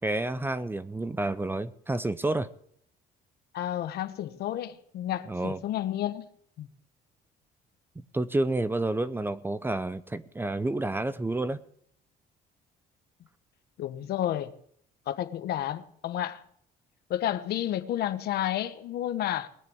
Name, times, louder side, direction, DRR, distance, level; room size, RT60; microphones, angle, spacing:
voice 1, 0.0-2.5 5.3-5.6 8.1-11.6, right 2 dB, 10° right, 0.7 m, -29 dB
voice 2, 3.5-6.3 6.6-6.7 13.8-14.5 15.1-16.4 17.1-19.5, left 12 dB, 70° left, 1.3 m, -31 dB
19.5 x 6.7 x 8.7 m
cardioid pair, 110°, 17 cm